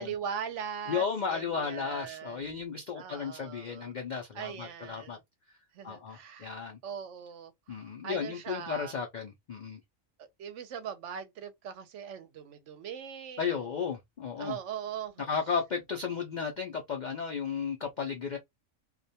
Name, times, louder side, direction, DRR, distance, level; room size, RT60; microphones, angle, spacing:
voice 1, 0.0-2.6 3.0-3.9 4.3-5.2 5.7-8.9 10.2-13.7 14.4-15.3, right 8 dB, 70° right, 0.8 m, -40 dB
voice 2, 0.9-5.2 5.8-6.8 7.7-9.8 13.4-14.6 15.3-18.4, left 6 dB, 70° left, 0.4 m, -34 dB
2.4 x 2.2 x 2.7 m
omnidirectional pair, 1.4 m